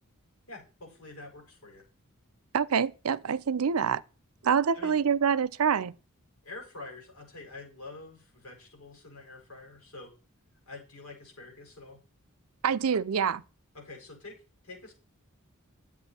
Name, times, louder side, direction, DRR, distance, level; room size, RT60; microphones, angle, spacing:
voice 1, 0.5-1.8 4.7-5.0 6.4-10.1 10.7-12.0 13.7-14.9, left 3 dB, 75° left, 5.8 m, -46 dB
voice 2, 2.5-4.0 4.4-5.9 12.6-13.4, right 6 dB, 80° right, 0.5 m, -26 dB
11.0 x 8.6 x 4.3 m
head